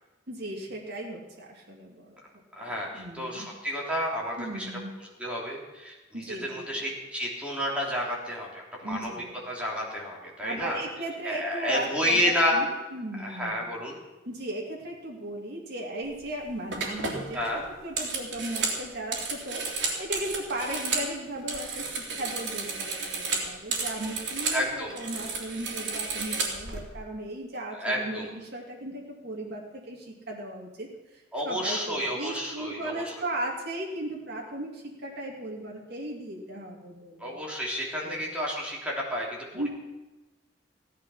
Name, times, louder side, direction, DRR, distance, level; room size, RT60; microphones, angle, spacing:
voice 1, 0.3-2.1 2.6-3.5 4.4-4.9 6.1-6.9 8.8-9.4 10.4-13.6 14.3-17.4 17.8-37.4 38.0-38.3 39.5-39.7, right 1 dB, 65° right, -2 dB, 2.4 m, -37 dB
voice 2, 2.5-4.7 5.2-9.1 9.5-10.8 11.2-12.6 13.2-14.0 17.3-17.6 24.5-24.9 27.7-28.3 31.3-33.0 37.2-39.3 39.5-39.7, equal, 5° right, -4 dB, 3.4 m, -30 dB
sound 1, 16.1-16.3 16.7-21.1 21.4-24.6 24.9-26.8, right 4 dB, 85° right, 3.1 m, -32 dB
16.0 x 11.0 x 5.6 m, 1.1 s
head